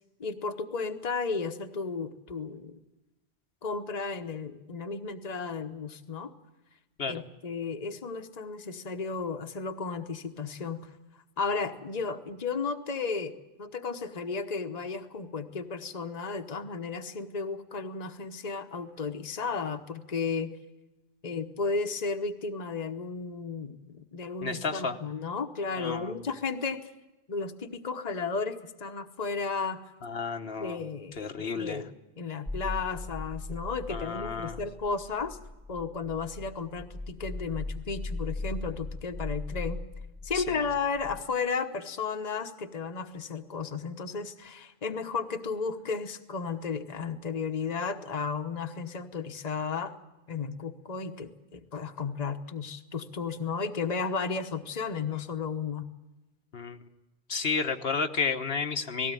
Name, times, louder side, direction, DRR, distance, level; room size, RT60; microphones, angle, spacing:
voice 1, 0.2-2.8 3.6-6.3 7.1-10.8 11.4-20.5 21.2-26.8 27.3-29.8 30.6-31.9 32.2-35.4 35.7-39.8 40.2-49.9 50.3-55.9, left 5 dB, 40° left, 6 dB, 1.2 m, -34 dB
voice 2, 24.4-25.0 25.8-26.1 30.0-30.8 31.2-31.8 33.9-34.6 40.3-40.6 56.5-56.8 57.3-59.1, left 5 dB, 70° left, 6 dB, 1.3 m, -31 dB
sound 1, 32.5-41.2, left 2 dB, 5° right, 0.5 m, -39 dB
19.0 x 16.5 x 9.1 m, 1.1 s
omnidirectional pair, 1.1 m